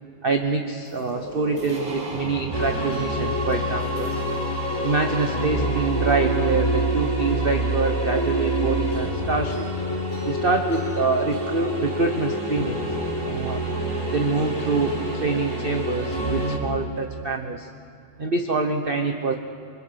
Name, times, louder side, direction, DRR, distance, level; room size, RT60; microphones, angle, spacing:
voice 1, 0.2-4.1 4.8-9.7 10.2-12.9 13.2-13.6 14.1-17.7 18.2-19.4, right 4 dB, 35° right, 4 dB, 1.0 m, -25 dB
sound 1, 0.9-4.9, right 3 dB, 70° right, 3.7 m, -37 dB
sound 2, 2.5-16.6, right 1 dB, 10° left, 4.0 m, -26 dB
29.5 x 22.0 x 6.4 m, 2.3 s
omnidirectional pair, 2.2 m